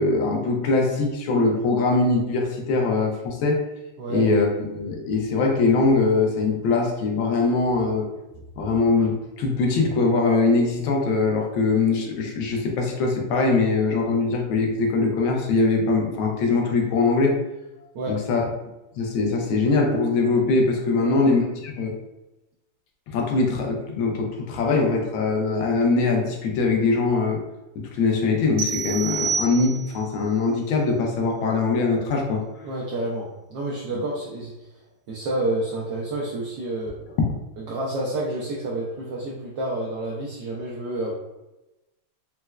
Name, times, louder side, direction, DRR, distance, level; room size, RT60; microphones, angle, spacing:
voice 1, 0.0-3.6 4.1-8.1 8.6-17.3 18.1-18.4 19.0-21.9 23.1-27.4 27.8-32.4, left 3 dB, 75° left, 1 dB, 1.4 m, -22 dB
voice 2, 20.9-21.4 32.6-34.8 35.1-37.0 37.6-41.1, right 1 dB, 85° right, -4 dB, 0.9 m, -29 dB
sound 1, 28.6-30.1, right 5 dB, 60° right, 1.2 m, -28 dB
4.3 x 2.1 x 2.2 m, 1.0 s
omnidirectional pair, 2.4 m